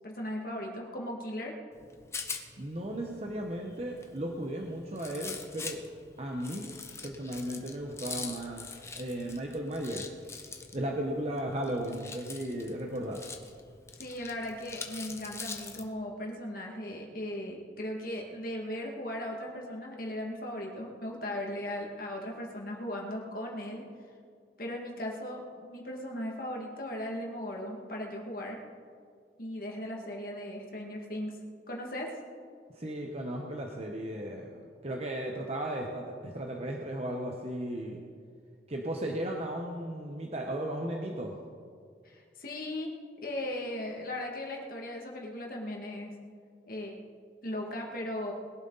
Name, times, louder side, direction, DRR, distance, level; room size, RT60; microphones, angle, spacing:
voice 1, 0.0-1.6 14.0-23.8 24.6-28.6 29.4-31.4 31.7-32.2 42.0-42.9 43.2-46.1 46.7-47.0 47.4-48.3, left 1 dB, 50° left, 0 dB, 2.1 m, -37 dB
Rattle, 1.7-15.9, left 4 dB, 15° left, 0.9 m, -44 dB
voice 2, 2.6-5.8 6.2-6.7 7.0-10.1 10.7-13.2 32.7-38.0 38.7-41.3, right 1 dB, 35° right, 1 dB, 1.1 m, -35 dB
21.0 x 11.5 x 4.1 m, 2.1 s
head